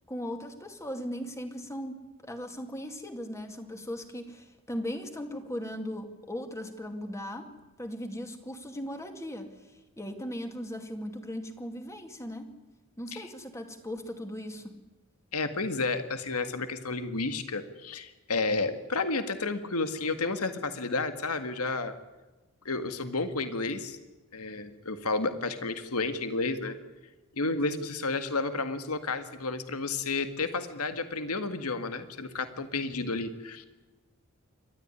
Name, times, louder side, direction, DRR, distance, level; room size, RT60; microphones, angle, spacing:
voice 1, 0.1-7.5 7.8-9.6 10.0-12.5 13.0-14.8, equal, 15° left, 5 dB, 2.3 m, -38 dB
voice 2, 15.3-21.9 22.6-24.0 24.3-26.8 27.3-33.7, left 3 dB, 80° left, 9 dB, 1.8 m, -31 dB
29.0 x 13.0 x 9.8 m, 1.1 s
head